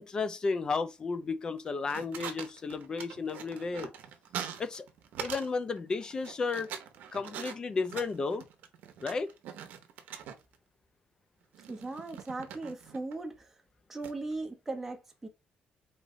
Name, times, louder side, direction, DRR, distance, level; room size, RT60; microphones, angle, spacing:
voice 1, 0.0-3.9 4.6-4.9 5.2-6.7 7.1-8.4 9.0-9.3, left 4 dB, 25° left, 0.6 m, -33 dB
sound 1, 1.6-5.5 5.8-10.6 11.5-13.1 14.0-14.3, right 8 dB, 85° right, 0.9 m, -43 dB
voice 2, 11.7-13.6 13.9-15.3, right 2 dB, 10° right, 0.7 m, -38 dB
4.2 x 3.3 x 3.7 m
cardioid pair, 165°, 3 cm